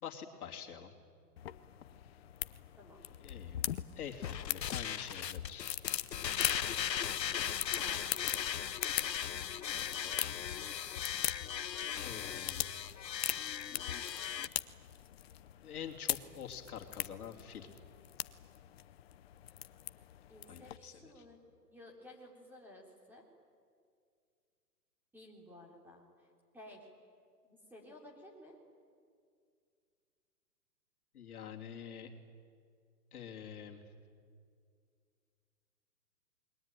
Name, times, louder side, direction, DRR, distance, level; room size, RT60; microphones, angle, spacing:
voice 1, 0.0-0.9 3.2-3.6 3.9-5.8 9.7-10.3 12.0-12.7 15.6-17.7 20.5-21.2 31.1-32.1 33.1-33.8, left 8 dB, 60° left, 2 dB, 3.1 m, -46 dB
sound 1, 1.4-20.8, left 12 dB, 40° left, 0.8 m, -42 dB
voice 2, 2.8-3.2 7.7-8.2 20.3-21.4 21.7-23.2 25.1-26.3 26.5-26.9 27.4-28.6, left 1 dB, 5° right, -1 dB, 3.6 m, -54 dB
sound 2, 4.2-14.5, left 9 dB, 85° left, 1.2 m, -38 dB
29.0 x 22.0 x 9.2 m, 2.2 s
hypercardioid pair, 150°, 49 cm